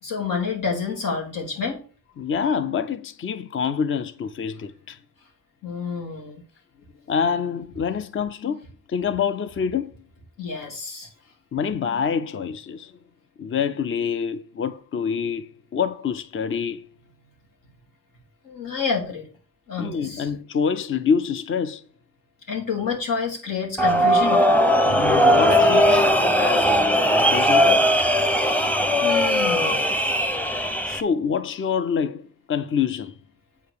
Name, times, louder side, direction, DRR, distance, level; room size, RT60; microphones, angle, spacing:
voice 1, 0.0-1.8 5.6-6.4 10.4-11.1 18.4-19.3 19.7-20.3 22.5-24.4 28.2-29.8, left 5 dB, 85° left, 3.3 m, -29 dB
voice 2, 2.2-5.0 7.1-9.9 11.5-13.0 13.4-16.9 19.8-21.8 24.9-27.8 29.8-29.9 30.3-30.4 30.9-33.2, left 6 dB, 40° left, 0.5 m, -26 dB
sound 1, 23.8-31.0, equal, 5° left, 0.7 m, -19 dB
8.3 x 5.0 x 6.8 m
wide cardioid pair, 150°, 32 cm